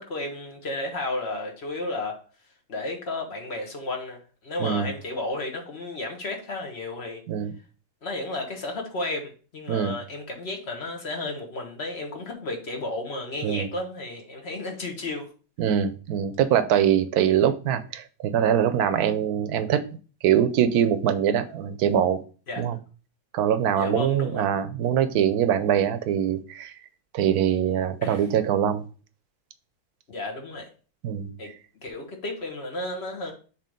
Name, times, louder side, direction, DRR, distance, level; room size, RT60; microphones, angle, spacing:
voice 1, 0.0-2.2 2.7-7.2 8.0-15.3 22.5-22.6 23.8-24.4 28.0-28.2 30.1-30.7 31.4-31.5 31.8-33.3, left 2 dB, 45° left, 1.6 m, -33 dB
voice 2, 15.6-19.8 20.2-22.2 22.6-22.8 23.3-26.7 27.1-28.8 31.0-31.3, right 9 dB, 80° right, 1.2 m, -23 dB
6.9 x 3.2 x 5.0 m
omnidirectional pair, 1.6 m